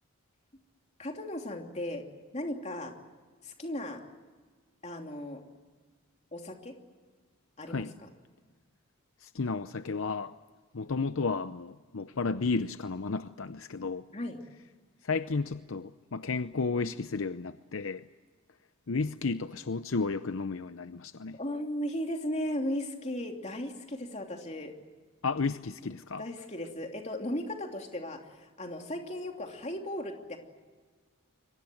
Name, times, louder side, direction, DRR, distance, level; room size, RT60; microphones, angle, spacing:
voice 1, 1.0-2.0 2.3-2.9 3.4-4.0 4.8-5.4 6.3-6.7 7.6-8.1 14.1-14.4 21.4-24.7 26.2-30.4, left 1 dB, 30° left, 3 dB, 3.0 m, -36 dB
voice 2, 9.2-10.3 10.7-14.0 15.0-18.0 18.9-21.4 25.2-26.2, left 4 dB, 65° left, 11 dB, 0.7 m, -32 dB
29.5 x 23.5 x 7.8 m, 1.5 s
head